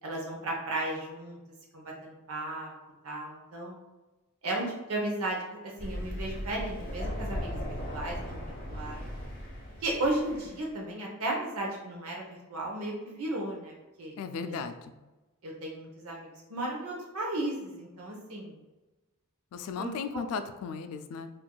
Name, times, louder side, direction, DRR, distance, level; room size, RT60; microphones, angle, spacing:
voice 1, 0.0-1.4 1.7-2.7 3.0-3.8 4.4-5.4 5.6-7.6 7.9-8.4 8.7-9.1 9.8-14.1 14.4-14.5 15.4-18.6 19.8-19.9, right 1 dB, 70° right, -1 dB, 0.7 m, -34 dB
Thunder, 5.8-10.6, equal, 40° left, 0.8 m, -37 dB
voice 2, 14.2-14.9 19.5-21.3, left 5 dB, 75° left, 9 dB, 0.3 m, -36 dB
4.4 x 2.5 x 2.2 m, 1.1 s
head